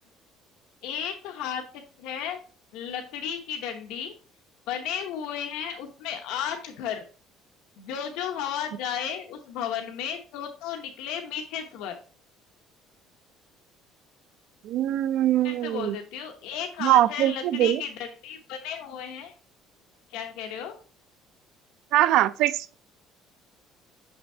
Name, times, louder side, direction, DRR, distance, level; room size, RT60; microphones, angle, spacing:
voice 1, 0.8-2.4 2.7-4.1 4.7-7.0 7.8-11.9 15.4-19.3 20.1-20.8, left 8 dB, 80° left, 0.9 m, -34 dB
voice 2, 14.6-16.0 16.8-17.8 21.9-22.7, right 13 dB, 60° right, 0.4 m, -22 dB
6.2 x 6.0 x 2.7 m
cardioid pair, 175°, 0 cm